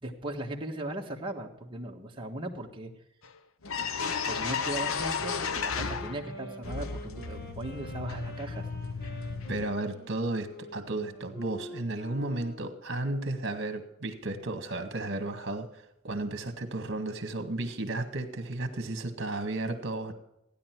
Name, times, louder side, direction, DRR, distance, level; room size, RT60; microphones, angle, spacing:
voice 1, 0.0-2.9 4.3-8.7, right 1 dB, 25° right, 0 dB, 1.5 m, -38 dB
sound 1, 3.2-3.3 3.6-6.3 6.6-9.6, left 5 dB, 75° left, 0.8 m, -33 dB
sound 2, 5.2-12.8, equal, 50° left, 1.4 m, -46 dB
voice 2, 9.5-20.1, right 2 dB, 55° right, 7 dB, 1.7 m, -33 dB
15.5 x 10.0 x 4.5 m, 0.83 s
head